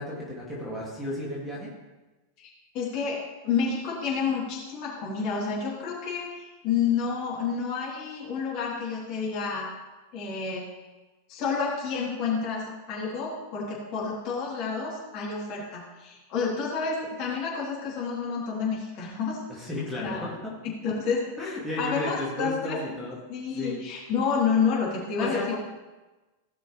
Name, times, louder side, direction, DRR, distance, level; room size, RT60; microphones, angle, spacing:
voice 1, 0.0-1.7 19.5-20.3 21.4-23.2 23.5-23.8 25.2-25.5, left 1 dB, ahead, -8 dB, 2.6 m, -33 dB
voice 2, 2.7-3.2 3.4-9.7 10.1-10.7 11.3-19.4 20.0-20.2 20.6-21.3 21.8-22.8 23.3-25.5, left 5 dB, 40° left, -5 dB, 3.6 m, -29 dB
16.5 x 6.2 x 3.4 m, 1.1 s
figure-of-eight pair, 90°, 0 cm